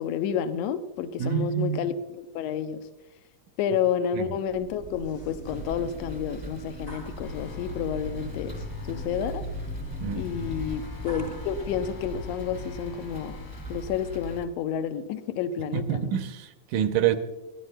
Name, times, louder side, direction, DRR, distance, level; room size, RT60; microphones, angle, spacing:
voice 1, 0.0-2.9 3.6-9.4 10.2-13.4 13.7-16.2, left 8 dB, 80° left, 1.5 m, -30 dB
voice 2, 1.2-1.9 4.1-4.3 10.0-10.3 15.7-17.2, right 9 dB, 85° right, 2.1 m, -27 dB
sound 1, 4.5-11.8, right 1 dB, 40° left, 0.8 m, -42 dB
sound 2, 5.4-14.4, right 1 dB, 5° left, 0.9 m, -41 dB
sound 3, 7.2-14.4, left 2 dB, 60° left, 2.9 m, -40 dB
23.0 x 11.5 x 2.2 m
omnidirectional pair, 3.6 m